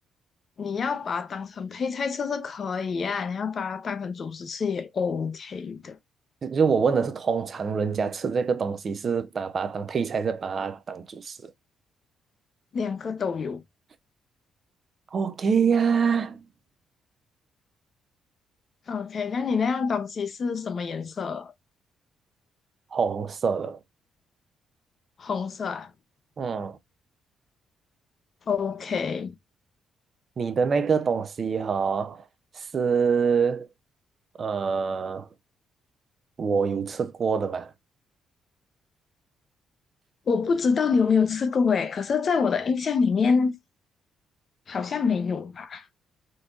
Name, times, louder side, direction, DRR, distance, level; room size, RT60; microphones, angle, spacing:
voice 1, 0.6-6.0 12.7-13.6 18.9-21.5 25.2-25.9 28.5-29.3 40.3-43.5 44.7-45.9, left 5 dB, 50° left, 0.6 m, -26 dB
voice 2, 6.4-11.5 15.1-16.5 22.9-23.8 26.4-26.8 30.4-32.2 32.5-33.7 34.4-35.3 36.4-37.7, right 6 dB, 45° right, 0.4 m, -25 dB
3.8 x 2.6 x 2.3 m
cardioid pair, 90°, 0 cm